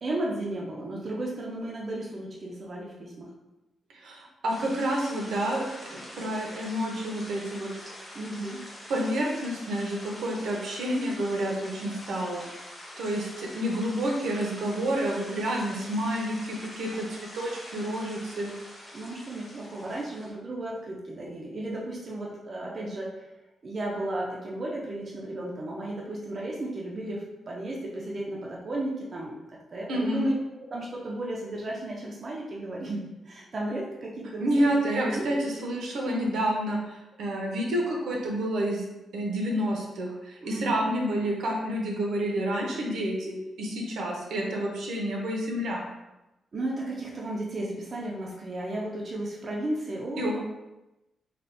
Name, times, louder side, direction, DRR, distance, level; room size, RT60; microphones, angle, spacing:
voice 1, 0.0-3.3 8.1-8.7 18.9-23.3 23.6-30.3 30.6-35.4 40.4-40.9 46.5-50.4, right 1 dB, 30° right, -3 dB, 0.4 m, -34 dB
voice 2, 3.9-5.6 5.9-7.7 8.9-12.4 13.0-18.5 29.9-30.3 34.4-38.8 39.1-45.9 50.2-50.4, right 1 dB, 75° right, -1 dB, 0.6 m, -29 dB
sound 1, 4.5-20.3, left 1 dB, 20° left, 0.7 m, -45 dB
3.4 x 2.3 x 2.5 m, 0.98 s
wide cardioid pair, 175°, 0 cm